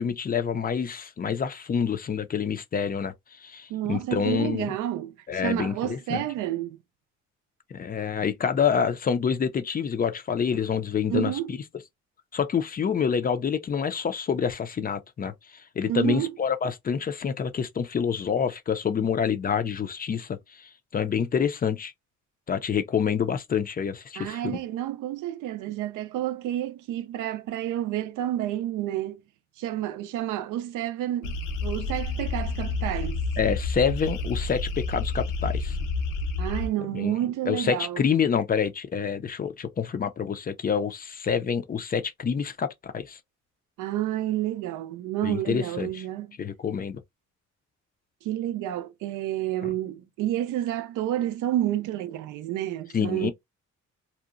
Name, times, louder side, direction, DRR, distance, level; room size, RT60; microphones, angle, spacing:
voice 1, 0.0-4.7 5.3-6.2 7.7-11.6 12.3-21.9 22.5-24.6 33.4-35.8 36.9-37.1 37.5-43.2 45.2-46.0 46.4-47.0 49.6-49.7 52.9-53.3, left 7 dB, 30° left, 0.4 m, -27 dB
voice 2, 3.7-5.1 5.4-6.8 11.1-11.5 15.9-16.3 24.2-29.2 29.6-31.4 31.6-33.2 36.4-38.0 43.8-46.3 48.2-53.3, right 13 dB, 85° right, 0.5 m, -29 dB
sound 1, 31.2-36.7, left 3 dB, 80° left, 0.6 m, -29 dB
2.7 x 2.1 x 2.4 m
cardioid pair, 90°, 30 cm